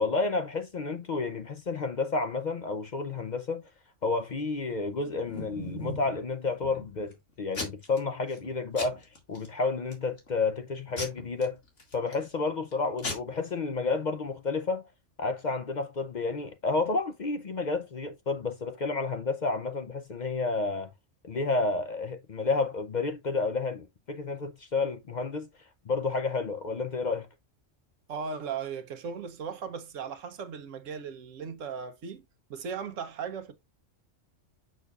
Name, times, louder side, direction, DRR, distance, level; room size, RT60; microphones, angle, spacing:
voice 1, 0.0-3.6 4.0-11.6 11.9-14.8 15.2-20.9 21.2-25.5 25.9-27.3, left 3 dB, 50° left, 0.6 m, -30 dB
Packing tape duct tape / Tearing, 4.9-6.1 6.6-7.1 7.5-8.0 8.3-8.5 8.8-9.5 9.9-10.3 11.0-12.2 12.7-12.8 13.0-13.1, left 2 dB, 75° left, 2.4 m, -38 dB
voice 2, 28.1-32.2 32.5-33.5, right 6 dB, 85° right, 1.2 m, -37 dB
6.5 x 6.4 x 2.4 m
omnidirectional pair, 1.3 m